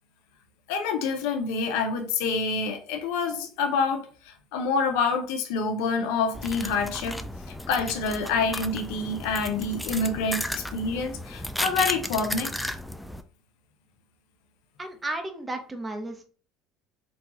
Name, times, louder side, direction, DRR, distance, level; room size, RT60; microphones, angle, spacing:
voice 1, 0.7-7.2 7.7-12.5, left 4 dB, 85° left, 0.6 m, -27 dB
sound 1, 6.3-13.2, left 1 dB, 5° left, 0.3 m, -34 dB
voice 2, 14.8-16.3, right 2 dB, 20° right, 0.8 m, -33 dB
4.0 x 2.3 x 2.8 m
supercardioid pair, 100°, 0 cm